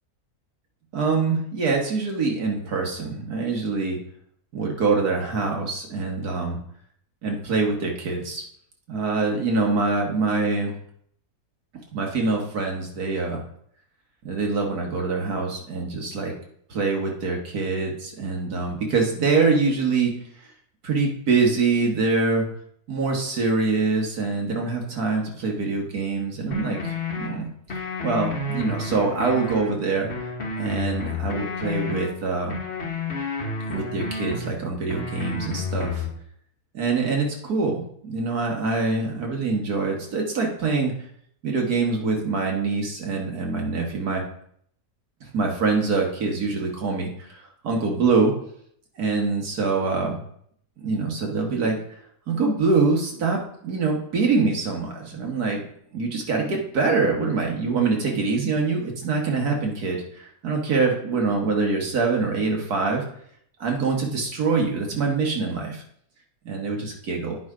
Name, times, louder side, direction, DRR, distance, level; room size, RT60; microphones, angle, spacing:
voice 1, 0.9-4.0 4.5-6.6 7.2-8.4 8.9-10.7 11.9-13.4 14.2-16.4 16.7-20.1 20.8-22.5 22.9-30.1 30.6-32.6 33.7-36.0 36.7-40.9 41.4-44.2 45.2-48.3 49.0-50.2 50.8-51.8 52.3-55.6 55.9-63.0 63.6-65.8 66.5-67.4, right 4 dB, 85° right, 1 dB, 2.1 m, -24 dB
sound 1, 26.5-27.3 27.7-29.7 30.1-32.1 32.5-34.5 34.9-36.1, left 3 dB, 45° left, 1.5 m, -30 dB
9.4 x 5.0 x 4.9 m, 0.67 s
omnidirectional pair, 1.6 m